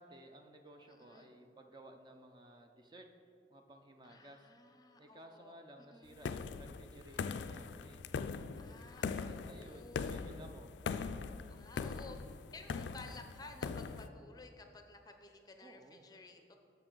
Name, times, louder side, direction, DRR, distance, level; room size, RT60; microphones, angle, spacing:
voice 1, 0.0-3.1 3.5-4.5 5.0-8.2 9.0-10.7 15.6-16.1, right 1 dB, 25° right, 4 dB, 0.5 m, -56 dB
voice 2, 0.9-1.3 4.0-6.2 8.6-10.3 11.5-12.2 12.5-16.6, left 3 dB, 20° left, 5 dB, 0.6 m, -55 dB
sound 1, 6.2-14.1, left 5 dB, 85° left, 0.3 m, -41 dB
10.5 x 6.8 x 3.9 m, 2.5 s
head